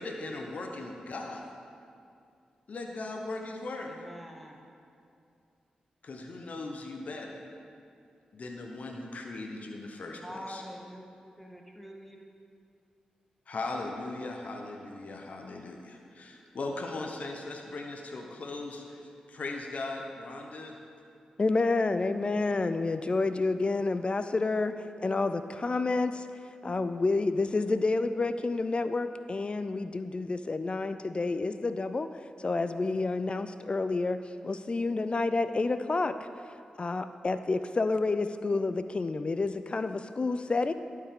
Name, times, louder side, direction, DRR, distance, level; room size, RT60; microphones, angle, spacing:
voice 1, 0.0-1.5 2.7-3.9 6.0-7.4 8.3-10.6 13.5-19.0 19.3-20.7, left 2 dB, 60° left, 2 dB, 0.8 m, -38 dB
voice 2, 3.9-4.6 10.2-11.1 11.4-12.2, equal, 5° left, 1 dB, 0.9 m, -45 dB
voice 3, 21.4-26.3 26.6-36.3 36.8-40.7, left 3 dB, 40° left, 11 dB, 0.3 m, -29 dB
12.0 x 4.7 x 3.7 m, 2.4 s
supercardioid pair, 40°, 3 cm